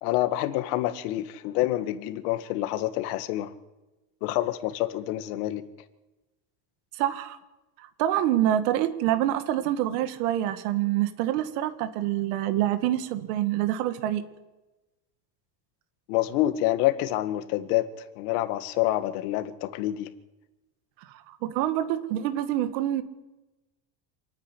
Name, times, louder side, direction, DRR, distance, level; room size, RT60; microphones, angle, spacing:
voice 1, 0.0-3.5 4.2-5.7 16.1-20.1, left 15 dB, 65° left, 1.8 m, -27 dB
voice 2, 6.9-7.4 7.8-14.2 21.1-23.0, right 12 dB, 70° right, 1.9 m, -26 dB
27.5 x 9.7 x 9.9 m
cardioid pair, 180°, 49 cm